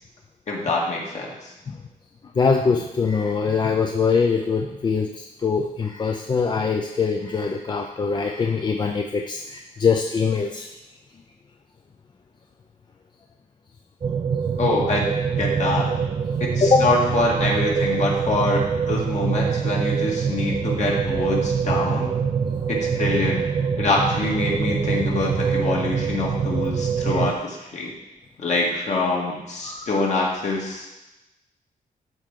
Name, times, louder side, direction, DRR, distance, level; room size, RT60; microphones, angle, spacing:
voice 1, 0.5-1.5 14.6-15.1 15.4-15.9 16.4-22.2 22.7-23.4 23.8-27.9 28.4-30.9, left 2 dB, 50° left, -2 dB, 1.8 m, -25 dB
voice 2, 2.3-10.7 16.6-16.9 22.6-22.7 27.1-27.2 29.6-29.9, left 5 dB, 30° left, 2 dB, 0.4 m, -23 dB
sound 1, 14.0-27.3, right 6 dB, 35° right, 0.3 m, -24 dB
12.5 x 4.5 x 3.7 m, 0.97 s
wide cardioid pair, 165°, 15 cm